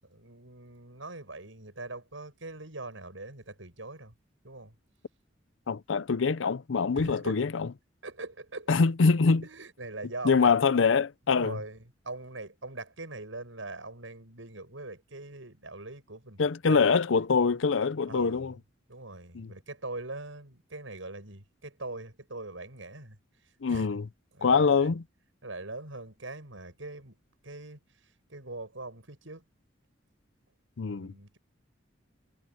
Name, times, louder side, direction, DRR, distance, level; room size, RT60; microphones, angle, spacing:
voice 1, 0.0-4.1 4.4-4.7 7.0-7.4 8.0-8.8 9.4-10.5 11.3-16.4 16.7-16.9 18.1-18.5 18.9-23.2 23.7-24.0 24.3-24.9 25.4-27.2 27.4-29.4 30.9-31.4, right 2 dB, 85° right, 7.1 m, -42 dB
voice 2, 5.7-7.7 8.7-9.4 10.2-11.6 16.4-18.5 19.3-19.5 23.6-24.1 24.4-25.0 30.8-31.1, left 5 dB, 75° left, 0.6 m, -24 dB
head